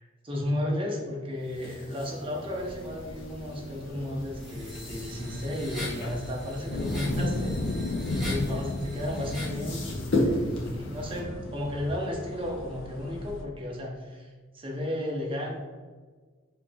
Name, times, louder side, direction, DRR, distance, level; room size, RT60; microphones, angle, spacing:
voice 1, 0.0-7.8 8.1-15.6, left 1 dB, 30° right, -1 dB, 0.9 m, -33 dB
sound 1, 1.3-11.2, left 1 dB, 70° left, 0.9 m, -36 dB
sound 2, 2.5-13.4, left 2 dB, 85° left, 0.5 m, -36 dB
sound 3, 4.4-9.7, left 1 dB, ahead, 1.1 m, -41 dB
4.5 x 2.9 x 3.5 m, 1.5 s
head